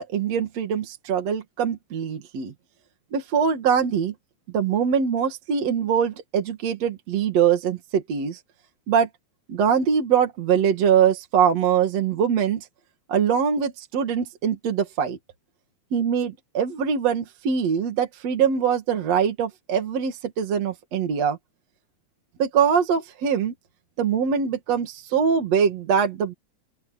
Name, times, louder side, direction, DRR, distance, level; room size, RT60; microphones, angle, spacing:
voice 1, 0.0-2.5 3.1-4.1 4.5-8.4 8.9-9.1 9.5-12.7 13.1-15.2 15.9-21.4 22.4-23.5 24.0-26.3, right 7 dB, 60° right, 3.1 m, -23 dB
open air
omnidirectional pair, 3.4 m